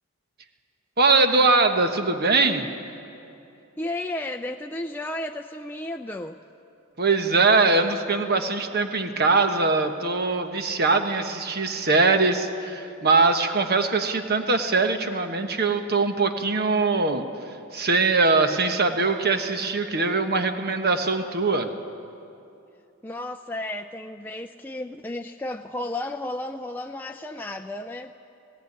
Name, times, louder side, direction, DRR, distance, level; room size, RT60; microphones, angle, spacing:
voice 1, 1.0-2.7 7.0-17.3 17.7-21.7, right 3 dB, 50° right, 7 dB, 1.2 m, -22 dB
voice 2, 3.8-6.4 23.0-28.1, left 1 dB, 10° left, 3 dB, 0.4 m, -33 dB
17.5 x 17.5 x 9.6 m, 2.7 s
head